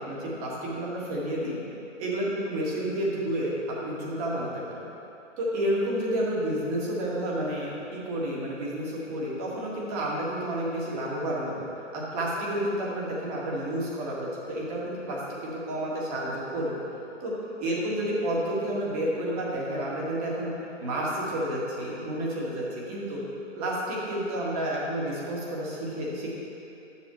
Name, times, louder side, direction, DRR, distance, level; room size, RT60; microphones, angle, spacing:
voice 1, 0.1-1.6 2.0-4.5 4.8-4.9 5.4-11.6 11.9-16.8 17.2-17.3 17.6-23.2 23.6-26.4, right 1 dB, 30° right, -4 dB, 1.7 m, -30 dB
10.5 x 7.3 x 3.1 m, 2.8 s
hypercardioid pair, 140°, 37 cm